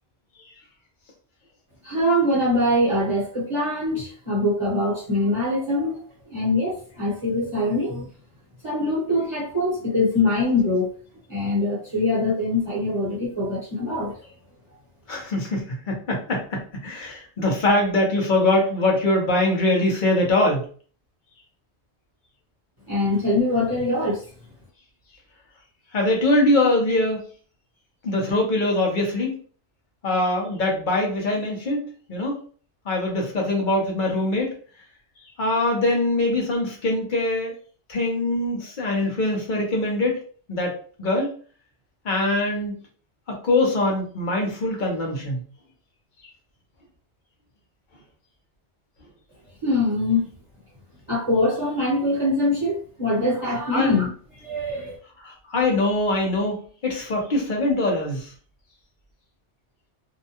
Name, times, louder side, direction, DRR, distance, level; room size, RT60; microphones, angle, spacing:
voice 1, 1.8-6.0 6.3-8.1 8.6-10.9 11.3-14.2 22.9-24.2 49.6-50.3 51.1-54.1 54.4-55.0, left 1 dB, 30° right, -6 dB, 0.9 m, -23 dB
voice 2, 15.1-20.6 25.9-27.2 28.0-29.4 30.0-32.4 32.8-34.5 35.4-37.5 37.9-40.2 40.5-41.3 42.0-42.7 43.3-45.4 53.7-53.9 55.2-58.3, left 2 dB, 50° left, 0 dB, 0.9 m, -23 dB
2.7 x 2.2 x 2.7 m, 0.44 s
omnidirectional pair, 1.2 m